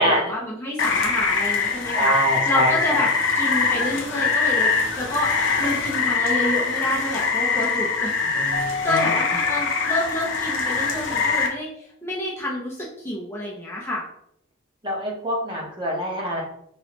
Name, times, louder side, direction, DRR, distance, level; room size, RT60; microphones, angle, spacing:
voice 1, 0.0-2.1 2.4-3.1 3.3-5.3 5.6-8.3 8.6-11.7 12.0-14.0, left 1 dB, 15° left, -5 dB, 0.6 m, -28 dB
Rain, 0.8-11.5, left 4 dB, 65° left, 0.6 m, -23 dB
voice 2, 1.9-3.1 8.4-9.1 14.8-16.4, equal, 25° right, -3 dB, 0.9 m, -24 dB
Keyboard (musical), 8.5-10.8, left 4 dB, 55° right, 1.5 m, -33 dB
3.1 x 3.0 x 2.9 m, 0.72 s
head